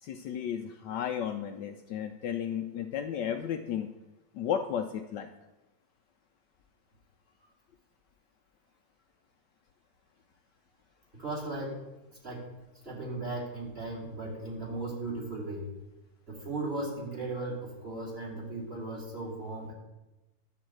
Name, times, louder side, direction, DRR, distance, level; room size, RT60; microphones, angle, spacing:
voice 1, 0.0-3.9 4.3-5.3, left 8 dB, 75° left, 5 dB, 1.1 m, -33 dB
voice 2, 11.1-11.8 12.2-12.5 12.8-15.7 16.3-19.7, right 2 dB, 30° right, -4 dB, 2.7 m, -37 dB
11.0 x 3.9 x 7.6 m, 1.0 s
omnidirectional pair, 2.1 m